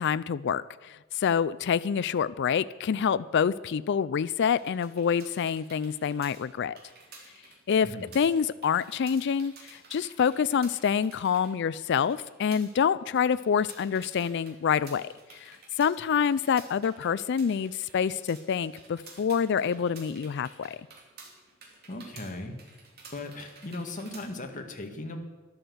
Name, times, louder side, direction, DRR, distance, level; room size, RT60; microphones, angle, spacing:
voice 1, 0.0-6.8 7.7-15.1 15.5-20.8, left 7 dB, 55° left, 16 dB, 0.4 m, -27 dB
sound 1, 4.6-24.3, right 3 dB, 50° right, 3.0 m, -52 dB
voice 2, 21.9-22.5 23.1-25.2, left 2 dB, 40° left, 3 dB, 1.7 m, -37 dB
12.5 x 11.5 x 7.8 m, 1.2 s
head